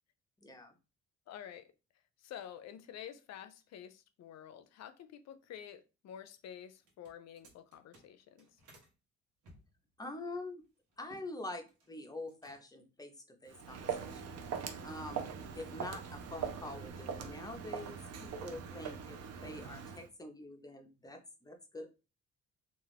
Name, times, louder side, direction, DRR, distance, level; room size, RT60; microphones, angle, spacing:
voice 1, 0.4-0.7 10.0-10.6 11.0-13.1 13.4-14.2 14.8-21.9, left 2 dB, 10° left, 0.6 m, -46 dB
voice 2, 1.3-1.7 2.2-8.5 15.0-15.2, left 9 dB, 60° left, 0.5 m, -49 dB
sound 1, 6.8-8.9 9.4-11.3 11.6-12.0 12.3-12.9, right 1 dB, 75° right, 1.1 m, -62 dB
Walk footsteps, 13.5-20.1, right 7 dB, 55° right, 0.6 m, -42 dB
2.5 x 2.4 x 3.3 m
cardioid pair, 90°, 30 cm